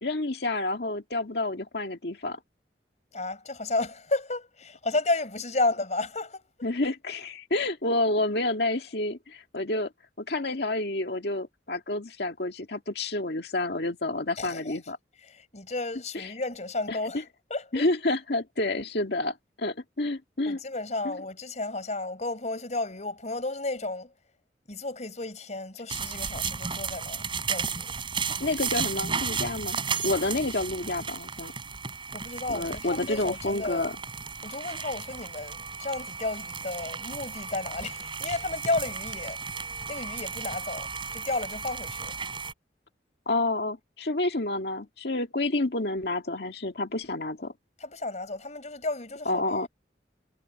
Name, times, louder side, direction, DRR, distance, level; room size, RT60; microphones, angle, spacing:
voice 1, 0.0-2.4 6.6-9.9 10.2-15.0 16.1-16.3 16.9-17.0 17.7-20.6 21.0-21.2 28.4-31.5 32.5-34.0 43.3-47.5 49.3-49.7, left 2 dB, 65° left, 2.0 m, -29 dB
voice 2, 3.1-6.5 14.4-14.8 15.3-17.2 17.5-17.9 20.5-24.1 24.7-27.9 32.1-33.9 34.4-39.4 39.9-42.2 47.8-49.7, left 2 dB, 40° left, 4.6 m, -32 dB
sound 1, 25.9-42.5, right 5 dB, 30° right, 5.1 m, -34 dB
head